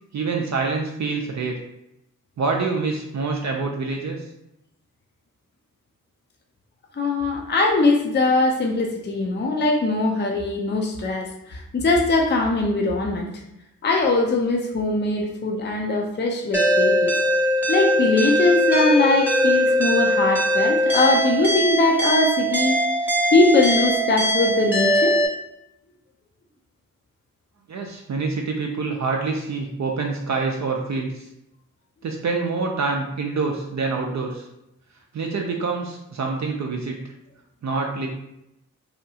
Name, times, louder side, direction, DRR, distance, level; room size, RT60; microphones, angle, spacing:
voice 1, 0.1-1.6 2.4-4.3 27.7-31.3 32.0-34.5 35.1-37.0 37.6-38.1, right 4 dB, 55° right, 1 dB, 0.5 m, -26 dB
voice 2, 6.9-13.4 13.8-17.2 17.7-22.8 23.3-25.2, left 2 dB, 30° left, 1 dB, 0.5 m, -21 dB
sound 1, 16.5-25.3, equal, 5° right, 0.8 m, -21 dB
2.8 x 2.2 x 2.7 m, 0.84 s
cardioid pair, 45°, 34 cm